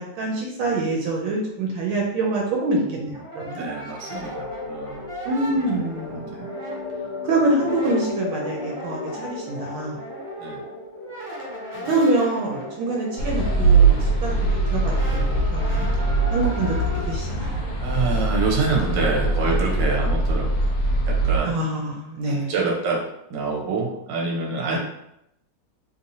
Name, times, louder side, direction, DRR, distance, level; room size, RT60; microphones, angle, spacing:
voice 1, 0.0-3.6 5.2-6.5 7.2-10.0 11.9-14.9 15.3-15.9 16.3-16.8 17.1-17.6 21.4-22.5 24.7-24.8, right 2 dB, 80° right, -1 dB, 1.4 m, -25 dB
Brass instrument, 2.8-7.2 7.5-19.6, right 1 dB, 35° right, 1.1 m, -39 dB
voice 2, 3.5-5.1 5.5-5.6 6.3-6.5 9.1-9.3 10.4-10.6 11.7-11.9 15.9-16.1 17.8-20.5 21.0-21.6 22.2-24.8, right 4 dB, 65° right, -1 dB, 1.4 m, -27 dB
sound 1, 4.1-17.2, right 5 dB, 90° left, 1.5 m, -27 dB
sound 2, 13.2-21.4, right 1 dB, 60° left, 1.1 m, -23 dB
3.4 x 2.8 x 2.6 m, 0.80 s
omnidirectional pair, 2.3 m